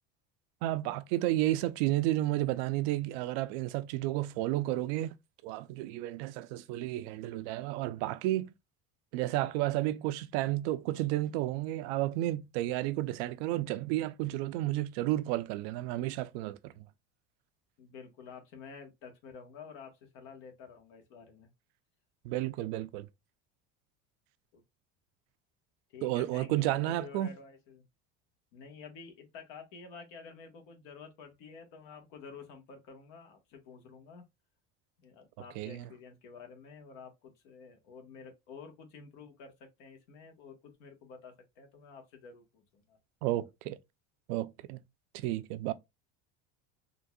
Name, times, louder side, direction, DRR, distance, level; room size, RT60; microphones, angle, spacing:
voice 1, 0.6-5.1 5.4-8.5 9.1-16.9 22.2-23.1 26.0-27.3 35.6-35.9 43.2-43.8 44.3-44.8 45.1-45.7, right 15 dB, 80° right, 0.5 m, -32 dB
voice 2, 17.8-21.5 24.5-24.6 25.9-27.8 28.5-34.2 35.0-43.0, left 5 dB, 80° left, 1.3 m, -50 dB
3.9 x 2.5 x 2.3 m
cardioid pair, 120°, 31 cm